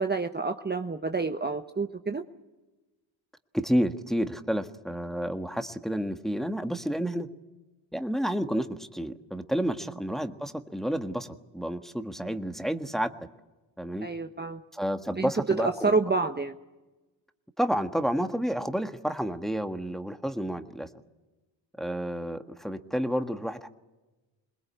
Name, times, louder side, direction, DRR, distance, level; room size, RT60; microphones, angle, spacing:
voice 1, 0.0-2.2 14.0-14.6 15.2-16.5, right 4 dB, 20° right, 6 dB, 1.0 m, -28 dB
voice 2, 3.5-7.3 7.9-13.1 13.8-14.1 14.7-16.0 17.6-20.9 21.8-23.7, equal, ahead, 7 dB, 1.5 m, -30 dB
22.5 x 20.5 x 8.5 m, 1.1 s
cardioid pair, 60°, 47 cm